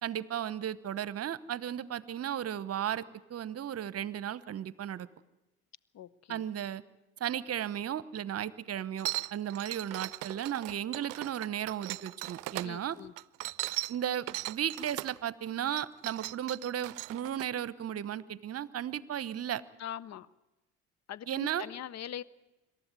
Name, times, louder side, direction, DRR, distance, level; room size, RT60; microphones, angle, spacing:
voice 1, 0.0-5.1 6.3-6.8 7.2-13.0 13.9-19.6 21.3-21.7, right 10 dB, 45° right, 18 dB, 1.0 m, -35 dB
voice 2, 5.9-6.4 12.6-13.1 19.8-20.3 21.1-22.2, left 10 dB, 50° left, 21 dB, 0.9 m, -42 dB
sound 1, 9.0-12.7 13.2-15.2 15.7-17.5, right 22 dB, 60° right, 0.6 m, -38 dB
26.5 x 13.0 x 9.4 m, 1.0 s
hypercardioid pair, 60°, 35 cm